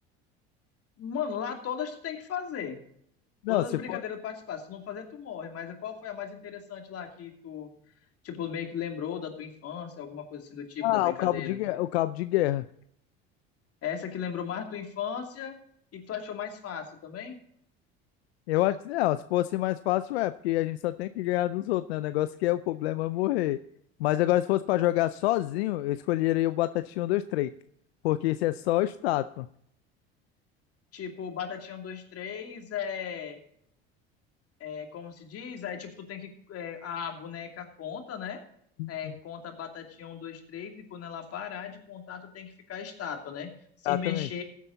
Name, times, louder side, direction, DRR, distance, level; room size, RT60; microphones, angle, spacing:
voice 1, 1.0-2.8 3.5-7.7 8.2-11.6 13.8-15.6 15.9-17.4 30.9-33.4 34.6-38.4 38.9-43.5 43.8-44.4, left 8 dB, 50° left, 4 dB, 2.7 m, -37 dB
voice 2, 3.4-4.0 10.8-12.7 18.5-23.6 24.0-27.5 28.0-29.5 38.8-39.1 43.9-44.3, left 16 dB, 90° left, 13 dB, 0.5 m, -27 dB
15.5 x 8.4 x 4.0 m, 0.68 s
supercardioid pair, 85°, 31 cm